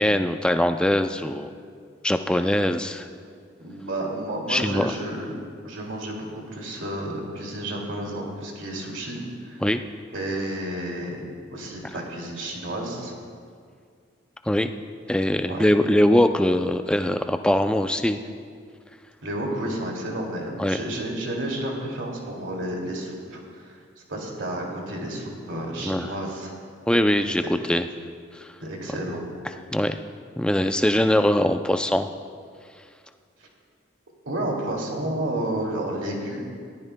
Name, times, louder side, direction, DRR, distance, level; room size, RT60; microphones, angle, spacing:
voice 1, 0.0-1.5 2.0-3.1 4.5-4.9 9.6-9.8 14.5-14.7 15.1-18.2 20.6-20.8 25.8-26.1 26.9-27.4 27.7-27.9 29.7-30.0 30.4-32.1, left 1 dB, 5° left, 7 dB, 0.3 m, -21 dB
voice 2, 3.6-5.3 5.6-9.6 10.1-11.2 11.5-13.1 15.5-15.7 19.2-23.8 24.1-26.5 27.4-27.6 28.6-29.2 33.4-33.5 34.3-36.4, right 1 dB, 85° right, -1 dB, 2.4 m, -31 dB
21.0 x 14.0 x 2.2 m, 2.2 s
head